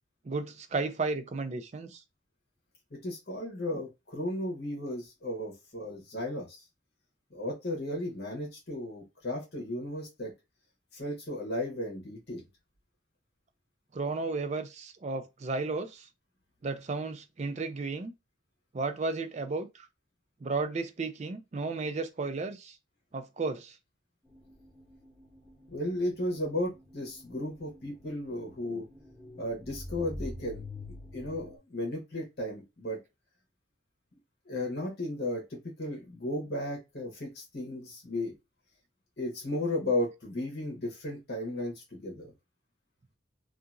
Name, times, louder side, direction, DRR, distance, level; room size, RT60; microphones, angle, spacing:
voice 1, 0.3-2.0 13.9-16.1 16.6-18.1 18.7-19.9 20.4-22.8 23.1-23.7, right 3 dB, 35° right, 0.4 m, -33 dB
voice 2, 2.9-6.6 7.3-10.3 10.9-12.4 25.7-28.9 29.4-30.6 31.1-33.0 34.5-38.3 39.2-42.3, left 1 dB, 55° left, 1.1 m, -34 dB
sound 1, 24.3-31.6, left 1 dB, 5° right, 1.1 m, -44 dB
2.8 x 2.4 x 2.4 m
head